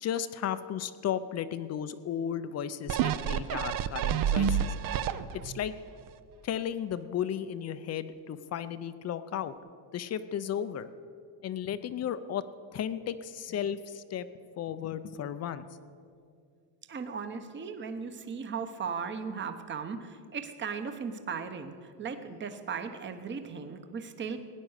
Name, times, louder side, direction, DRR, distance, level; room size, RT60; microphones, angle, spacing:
voice 1, 0.0-4.6 5.3-5.7 6.4-9.5 9.9-10.9 11.4-12.4 12.7-14.3 14.6-15.6, left 9 dB, 35° left, 13 dB, 0.6 m, -34 dB
sound 1, 2.9-5.6 6.1-6.2, right 8 dB, 45° right, 0.6 m, -29 dB
voice 2, 16.9-24.4, right 6 dB, 25° right, 8 dB, 0.9 m, -37 dB
17.5 x 9.7 x 6.4 m, 2.3 s
cardioid pair, 135°, 48 cm